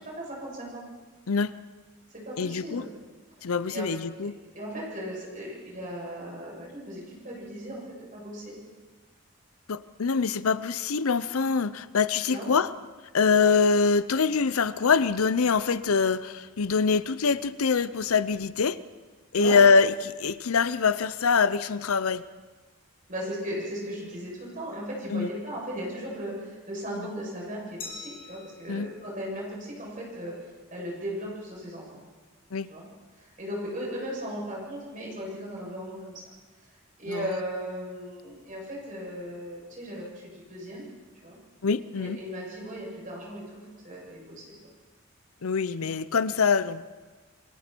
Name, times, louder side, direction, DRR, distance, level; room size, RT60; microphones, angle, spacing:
voice 1, 0.1-0.8 2.1-2.9 3.4-3.9 4.2-7.8 8.1-8.5 12.3-12.5 13.3-13.5 19.3-19.6 23.1-32.0 32.7-32.8 33.2-36.2 37.0-40.9 41.2-41.4 42.0-44.4, equal, 35° right, -4 dB, 7.9 m, -37 dB
voice 2, 2.4-2.8 3.4-4.3 9.7-12.7 13.1-18.8 19.3-22.3 25.1-25.3 26.9-27.1 28.7-28.9 32.5-32.7 37.1-37.3 41.6-42.2 45.4-46.8, left 5 dB, 85° left, 16 dB, 0.7 m, -24 dB
Glass, 27.8-30.5, left 3 dB, 40° left, 3.0 m, -46 dB
28.5 x 23.0 x 4.6 m, 1.3 s
head